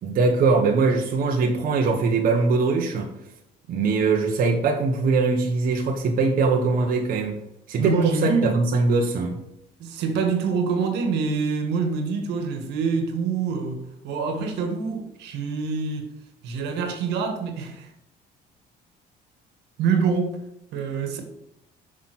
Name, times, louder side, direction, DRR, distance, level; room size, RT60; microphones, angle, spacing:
voice 1, 0.0-3.1 3.7-7.4 7.7-9.4, right 4 dB, 60° right, 1.3 m, -22 dB
voice 2, 7.8-8.6 9.8-16.1 16.4-17.9 19.8-20.4 20.7-21.2, right 5 dB, 85° right, 1.7 m, -25 dB
6.4 x 6.0 x 6.0 m
cardioid pair, 110°, 17 cm